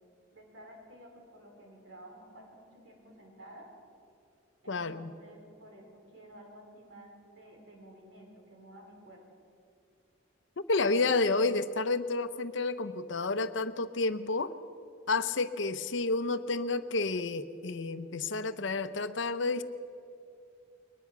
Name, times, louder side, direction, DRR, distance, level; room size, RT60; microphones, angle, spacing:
voice 1, 0.3-3.7 4.6-9.2, right 1 dB, 70° right, 0 dB, 5.0 m, -52 dB
voice 2, 4.7-5.1 10.7-14.5 15.1-19.6, left 3 dB, 65° left, 11 dB, 0.8 m, -30 dB
21.5 x 20.0 x 6.0 m, 2.4 s
head